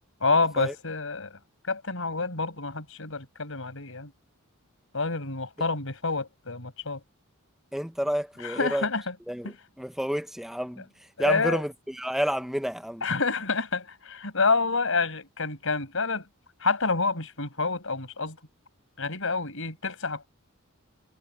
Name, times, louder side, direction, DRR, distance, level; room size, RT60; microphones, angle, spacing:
voice 1, 0.2-1.4 1.6-4.1 4.9-7.0 8.4-9.1 9.4-9.5 11.2-11.6 13.0-16.3 16.6-18.4 19.0-20.3, left 4 dB, 65° left, 6.1 m, -28 dB
voice 2, 7.7-8.9 9.3-10.8 11.2-13.0, equal, ahead, 0.8 m, -30 dB
head